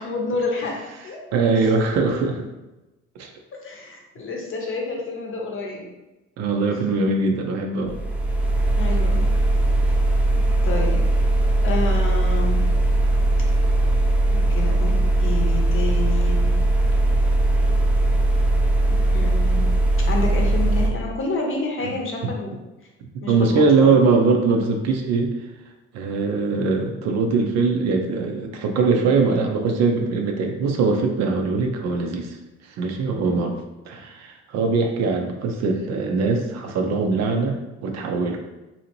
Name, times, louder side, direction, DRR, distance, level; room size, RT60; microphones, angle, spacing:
voice 1, 0.0-1.2 3.6-5.9 8.7-9.3 9.9-10.0 10.6-11.0 11.6-12.7 14.3-16.6 19.1-22.5 23.2-24.0 33.3-33.4, left 3 dB, 40° left, 0 dB, 0.8 m, -29 dB
voice 2, 1.3-2.5 3.2-3.3 6.4-8.0 21.8-21.9 23.3-25.3 25.9-32.4 32.6-33.6 33.9-38.4, right 4 dB, 55° right, 3 dB, 0.5 m, -21 dB
sound 1, 7.9-20.9, right 2 dB, 5° right, 0.4 m, -19 dB
2.7 x 2.1 x 2.9 m, 1.0 s
hypercardioid pair, 55°, 33 cm